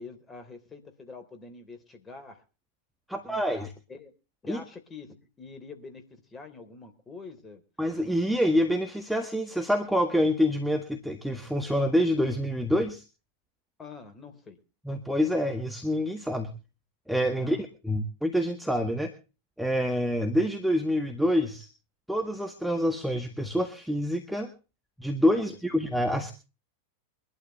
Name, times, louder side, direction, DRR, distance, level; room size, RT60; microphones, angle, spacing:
voice 1, 0.0-2.4 3.1-4.1 4.4-6.0 6.3-7.6 13.8-14.6 17.3-17.6 25.3-25.4, left 4 dB, 20° left, 7 dB, 3.5 m, -45 dB
voice 2, 3.1-3.7 4.5-4.6 7.8-13.0 14.8-16.5 17.1-17.6 17.8-19.1 19.6-21.7 22.1-24.5 25.0-26.3, equal, ahead, 4 dB, 1.7 m, -26 dB
23.5 x 12.0 x 3.2 m, 0.32 s
figure-of-eight pair, 90°, 0 cm